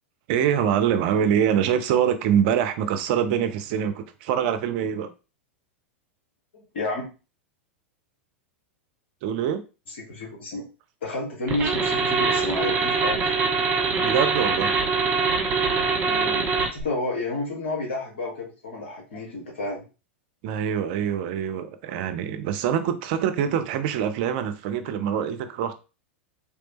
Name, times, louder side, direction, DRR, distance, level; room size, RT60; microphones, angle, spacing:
voice 1, 0.3-5.1 9.2-9.6 14.0-14.7 20.4-25.7, right 8 dB, 50° right, 0.6 m, -24 dB
voice 2, 6.7-7.1 9.9-10.6 11.0-13.3 16.0-19.8, left 2 dB, 70° left, 1.6 m, -31 dB
sound 1, 11.5-16.8, right 4 dB, 30° right, 1.5 m, -23 dB
3.5 x 3.2 x 3.0 m
figure-of-eight pair, 90°, 7 cm